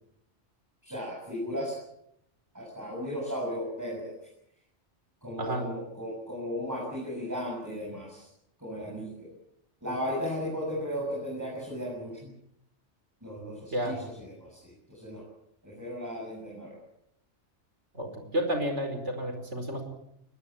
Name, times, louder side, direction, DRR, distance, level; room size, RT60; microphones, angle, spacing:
voice 1, 0.8-1.7 2.5-4.1 5.2-8.3 8.6-9.3 9.8-12.3 13.2-15.2 15.6-16.8, equal, 15° right, -3 dB, 7.9 m, -35 dB
voice 2, 17.9-19.8, equal, 70° right, 6 dB, 5.1 m, -31 dB
22.0 x 20.5 x 8.9 m, 0.78 s
omnidirectional pair, 1.2 m